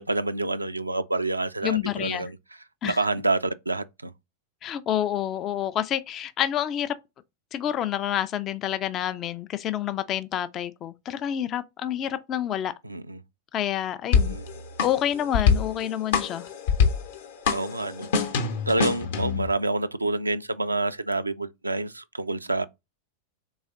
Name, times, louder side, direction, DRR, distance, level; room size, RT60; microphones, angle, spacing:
voice 1, 0.0-2.4 2.8-4.1 12.8-13.2 14.3-14.4 17.5-18.1 18.7-22.6, right 2 dB, 85° right, 0.3 m, -28 dB
voice 2, 1.6-2.3 2.8-3.0 4.6-7.0 7.5-12.7 13.5-14.4 14.8-16.5 19.2-19.5, left 11 dB, 30° left, 0.3 m, -28 dB
sound 1, 14.1-19.5, left 6 dB, 55° left, 0.8 m, -25 dB
4.0 x 3.4 x 3.7 m
figure-of-eight pair, 90°, 0 cm